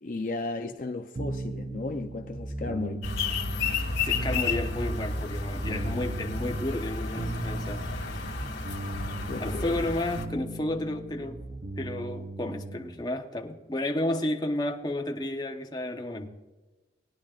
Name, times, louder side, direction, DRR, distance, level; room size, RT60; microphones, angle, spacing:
voice 1, 0.0-3.1 9.3-9.8, left 3 dB, 45° left, 0.6 m, -34 dB
sound 1, 1.1-13.0, right 2 dB, 35° right, 0.7 m, -38 dB
sound 2, 3.0-10.3, left 4 dB, 90° left, 1.9 m, -32 dB
voice 2, 4.0-7.9 9.4-11.4 11.8-16.3, left 1 dB, 25° left, 0.9 m, -32 dB
19.5 x 10.5 x 2.4 m
head